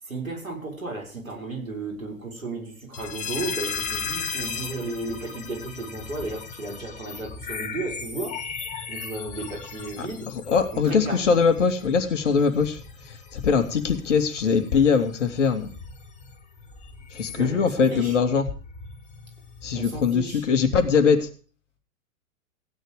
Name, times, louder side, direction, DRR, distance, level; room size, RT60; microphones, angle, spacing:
voice 1, 0.0-8.4 8.9-10.3 10.7-11.3 17.4-18.2 19.7-20.4, right 3 dB, 75° right, 0 dB, 6.5 m, -34 dB
sound 1, 2.9-20.0, left 6 dB, 15° left, 2.7 m, -37 dB
voice 2, 10.0-15.7 17.1-18.5 19.6-21.3, left 5 dB, 60° left, 7 dB, 2.7 m, -22 dB
16.0 x 10.5 x 5.1 m, 0.40 s
figure-of-eight pair, 110°, 41 cm